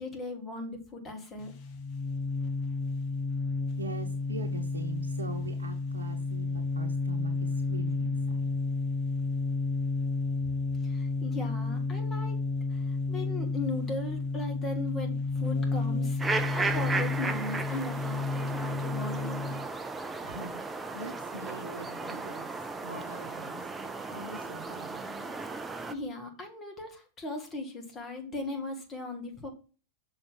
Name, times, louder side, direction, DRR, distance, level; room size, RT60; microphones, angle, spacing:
voice 1, 0.0-1.5 10.8-12.4 12.7-19.6 25.9-29.5, left 2 dB, 25° left, 4 dB, 2.0 m, -38 dB
sound 1, 1.4-19.7, left 3 dB, 40° left, 1.1 m, -31 dB
voice 2, 3.8-8.5 20.2-22.5 22.8-25.3, right 3 dB, 75° right, 5 dB, 0.8 m, -43 dB
sound 2, 16.2-25.9, right 3 dB, 15° right, 0.6 m, -35 dB
6.6 x 4.1 x 5.9 m, 0.37 s
figure-of-eight pair, 95°, 0 cm